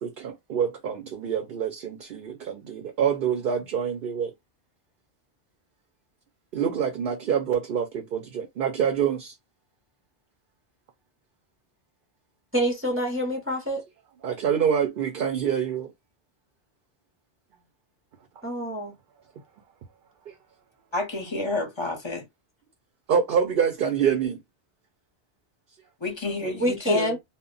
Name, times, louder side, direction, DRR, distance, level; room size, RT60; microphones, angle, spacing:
voice 1, 0.0-4.3 6.5-9.3 14.2-15.9 23.1-24.4, right 7 dB, 60° right, 0.7 m, -26 dB
voice 2, 12.5-13.8 18.4-18.9 26.4-27.2, equal, 15° right, 0.6 m, -26 dB
voice 3, 20.9-22.2 26.0-27.2, left 2 dB, 30° left, 0.7 m, -29 dB
2.2 x 2.1 x 3.7 m
omnidirectional pair, 1.1 m